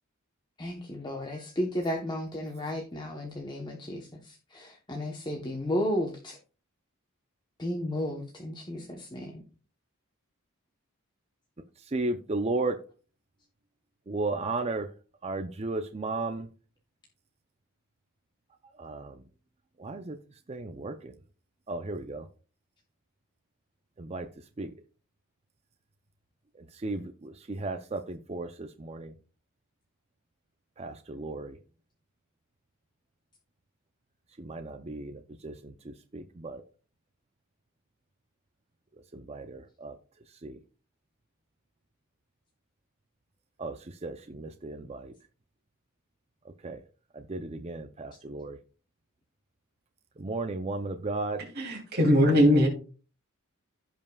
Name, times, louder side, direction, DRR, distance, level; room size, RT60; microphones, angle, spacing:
voice 1, 0.6-6.4 7.6-9.4, left 1 dB, 20° left, 1 dB, 1.0 m, -33 dB
voice 2, 11.9-12.7 14.1-14.9 15.2-16.5 18.8-19.1 19.8-20.2 20.5-21.1 21.7-22.2 24.0-24.3 24.6-24.7 26.8-29.1 30.8-31.5 34.4-36.6 39.1-39.9 40.4-40.6 43.6-43.7 44.0-45.1 46.6-46.8 47.3-48.6 50.2-51.4, right 2 dB, 30° right, 7 dB, 0.5 m, -34 dB
voice 3, 51.5-52.7, equal, 45° right, -1 dB, 2.9 m, -21 dB
15.5 x 5.4 x 2.3 m, 0.37 s
head